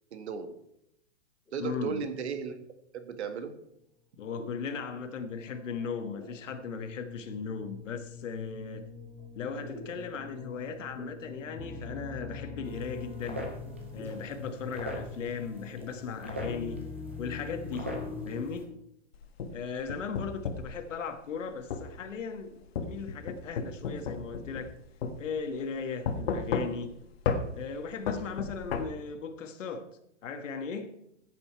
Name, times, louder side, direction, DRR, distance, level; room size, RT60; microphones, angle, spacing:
voice 1, 0.1-0.5 1.5-2.6 2.9-3.6, right 6 dB, 65° right, 1.7 m, -35 dB
sound 1, 1.5-1.7 4.4-18.6, left 4 dB, 5° left, 2.0 m, -44 dB
voice 2, 1.6-2.0 4.2-8.8 9.3-13.5 13.9-16.9 17.2-17.9 18.2-18.7 19.5-24.8 25.2-26.9 27.5-29.9 30.2-31.0, left 5 dB, 90° left, 1.5 m, -37 dB
sound 2, 12.6-18.6, equal, 10° right, 0.4 m, -42 dB
sound 3, 19.1-20.7 21.7-21.9 22.8-24.7 25.0-25.2 26.1-26.9 27.3-27.4 28.1-28.8, left 6 dB, 55° left, 1.4 m, -32 dB
13.5 x 8.2 x 4.6 m
hypercardioid pair, 175°, 37 cm